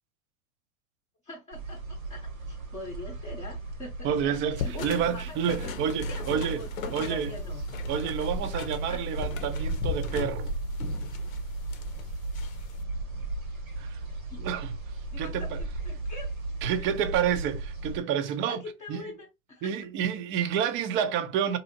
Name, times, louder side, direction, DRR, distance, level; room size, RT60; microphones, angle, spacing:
voice 1, 1.2-7.6 8.9-9.0 14.3-14.4 15.1-16.3 16.8-16.9 18.5-19.7, left 2 dB, 20° left, 0.7 m, -43 dB
sound 1, 1.5-18.0, right 2 dB, 90° right, 1.2 m, -35 dB
voice 2, 4.0-6.6 6.9-7.3 7.9-10.5 13.8-14.0 14.4-14.8 15.2-15.6 16.6-18.6 18.9-19.1 19.6-21.6, right 8 dB, 30° right, 0.4 m, -29 dB
sound 2, 4.6-12.8, left 7 dB, 75° left, 0.7 m, -38 dB
2.7 x 2.6 x 2.6 m
hypercardioid pair, 100°, 40 cm